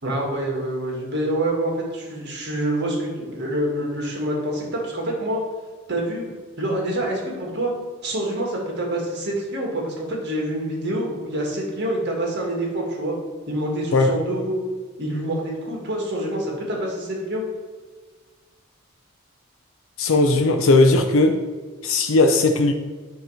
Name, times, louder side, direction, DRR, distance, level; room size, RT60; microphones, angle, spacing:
voice 1, 0.0-5.4 5.9-6.2 6.6-7.7 8.0-13.1 13.5-14.6 15.0-17.4, right 1 dB, 55° right, -1 dB, 1.7 m, -26 dB
voice 2, 20.0-21.4 21.8-22.7, left 2 dB, 70° left, 5 dB, 0.5 m, -17 dB
7.8 x 3.0 x 5.6 m, 1.4 s
head